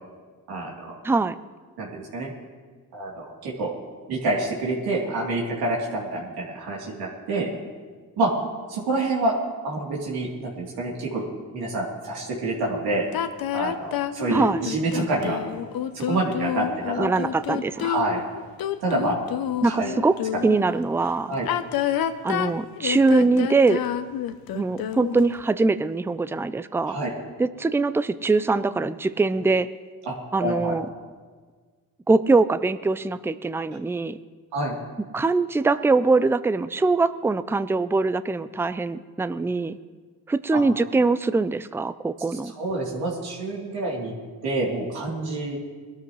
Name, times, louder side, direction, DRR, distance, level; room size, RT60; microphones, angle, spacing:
voice 1, 0.5-1.0 1.8-2.3 2.9-3.7 4.1-7.5 8.2-8.3 8.7-9.4 9.6-11.3 11.5-13.0 13.5-15.4 15.9-17.1 17.7-18.2 18.8-19.1 19.6-19.9 21.3-21.5 26.9-27.1 30.0-30.1 30.4-30.8 34.5-34.8 40.5-40.6 42.6-44.1 44.4-45.6, right 2 dB, 85° right, -3 dB, 3.3 m, -27 dB
voice 2, 1.0-1.4 14.3-14.6 17.0-17.9 19.6-20.1 20.4-21.4 22.2-23.8 24.5-27.0 27.4-29.7 30.3-30.9 32.1-34.2 35.1-39.8 40.3-42.5, right 3 dB, 5° right, 14 dB, 0.4 m, -22 dB
sound 1, 13.1-20.6 21.3-25.4, left 10 dB, 70° left, 0.8 m, -28 dB
21.5 x 13.0 x 3.2 m, 1.5 s
cardioid pair, 85°, 37 cm